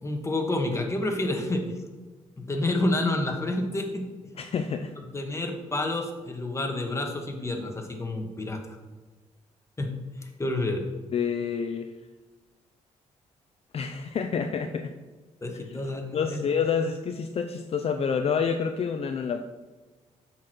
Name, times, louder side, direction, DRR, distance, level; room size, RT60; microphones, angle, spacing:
voice 1, 0.0-1.7 2.4-4.0 5.0-8.8 9.8-10.8 15.4-16.4, left 2 dB, 20° left, 3 dB, 1.4 m, -29 dB
voice 2, 4.4-4.9 11.1-11.9 13.7-14.9 16.1-19.4, left 6 dB, 50° left, 7 dB, 0.5 m, -28 dB
7.2 x 4.6 x 6.1 m, 1.3 s
cardioid pair, 80°, 13 cm